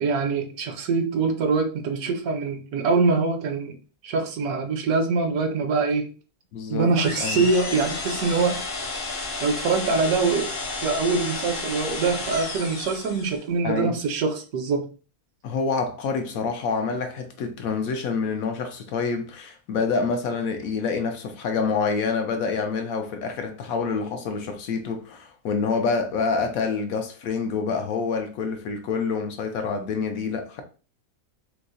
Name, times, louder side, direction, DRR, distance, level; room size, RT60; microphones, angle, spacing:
voice 1, 0.0-3.8 4.0-6.1 6.7-8.6 9.4-10.5 10.8-14.9, right 4 dB, 75° right, 1.1 m, -24 dB
voice 2, 6.5-6.9 7.2-7.4 13.6-14.0 15.4-30.6, left 5 dB, 70° left, 1.0 m, -27 dB
sound 1, 6.9-13.4, left 3 dB, 55° left, 0.6 m, -32 dB
4.5 x 2.0 x 2.5 m
omnidirectional pair, 1.6 m